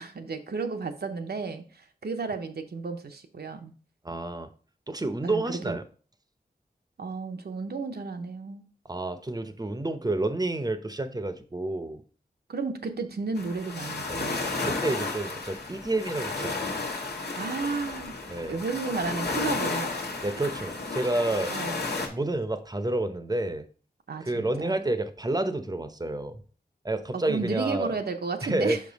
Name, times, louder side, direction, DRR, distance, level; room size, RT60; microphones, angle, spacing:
voice 1, 0.0-3.7 5.2-5.8 7.0-8.6 12.5-14.5 17.3-18.2 18.5-19.9 20.4-20.5 21.5-21.8 24.1-24.8 27.1-28.8, right 4 dB, 75° right, 6 dB, 0.8 m, -33 dB
voice 2, 4.0-4.5 4.9-5.8 8.8-12.0 14.1-14.2 14.6-16.8 18.3-18.6 19.3-19.5 20.2-21.5 22.1-23.7 24.2-26.4 26.8-28.0 28.4-28.8, right 2 dB, 25° right, 9 dB, 0.7 m, -29 dB
sound 1, 13.4-22.1, left 3 dB, 85° left, 1.3 m, -33 dB
5.4 x 5.3 x 4.0 m, 0.40 s
wide cardioid pair, 75°, 17 cm